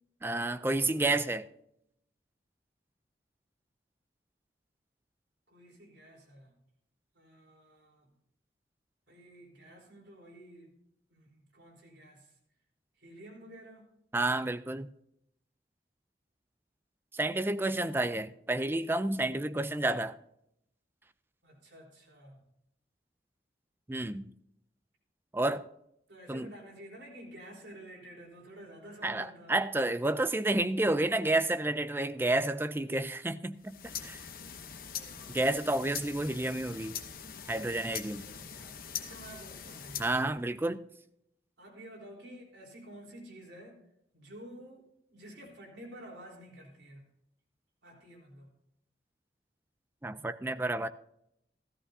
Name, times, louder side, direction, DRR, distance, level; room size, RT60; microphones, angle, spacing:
voice 1, 0.2-1.5 14.1-14.9 17.1-20.2 23.9-24.3 25.3-25.6 26.3-26.5 29.0-34.2 35.3-36.9 37.5-38.3 40.0-40.8 50.0-50.9, right 2 dB, 10° right, 0.4 m, -30 dB
voice 2, 5.5-6.5 7.1-8.1 9.1-10.8 11.1-12.3 13.0-13.9 21.4-22.4 26.1-29.5 34.9-35.5 38.0-40.1 41.6-43.8 44.1-47.0 47.8-48.5, right 1 dB, 80° right, 3.9 m, -51 dB
sound 1, 33.6-40.3, left 8 dB, 50° left, 0.9 m, -43 dB
15.0 x 14.0 x 2.7 m
head